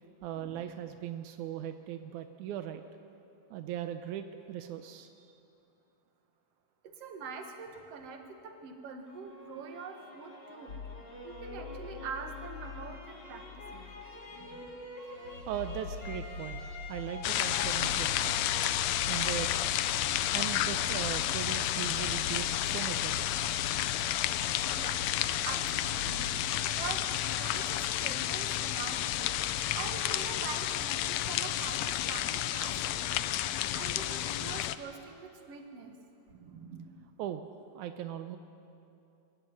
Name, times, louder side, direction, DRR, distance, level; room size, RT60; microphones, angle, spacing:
voice 1, 0.2-2.8 3.5-5.4 15.2-18.3 19.1-19.5 20.3-23.3 37.2-37.5 37.7-38.4, right 10 dB, 85° right, 8 dB, 2.2 m, -39 dB
voice 2, 6.8-10.8 11.2-13.4 13.7-13.9 14.4-14.7 24.8-25.0 25.5-26.3 26.7-29.4 29.7-35.9 36.3-36.8, right 5 dB, 60° right, 4 dB, 2.6 m, -44 dB
sound 1, 9.1-20.1, left 2 dB, 20° left, 1.9 m, -47 dB
sound 2, 10.7-29.9, left 2 dB, 55° left, 1.5 m, -45 dB
sound 3, 17.2-34.8, left 13 dB, 75° left, 1.7 m, -31 dB
23.0 x 13.5 x 9.5 m, 2.7 s
omnidirectional pair, 3.3 m